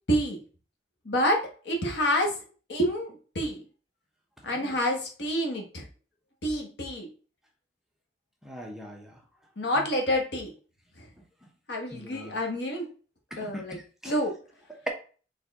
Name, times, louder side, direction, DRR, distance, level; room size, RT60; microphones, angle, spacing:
voice 1, 0.1-0.4 1.0-2.4 2.7-3.6 4.4-5.8 6.4-7.1 9.6-10.5 11.7-12.9 13.4-13.8 14.0-14.4, equal, 75° left, 1.3 m, -28 dB
voice 2, 4.4-4.8 8.4-9.1 11.9-12.3 13.3-14.1, equal, 5° right, 0.8 m, -42 dB
4.3 x 3.5 x 3.5 m
head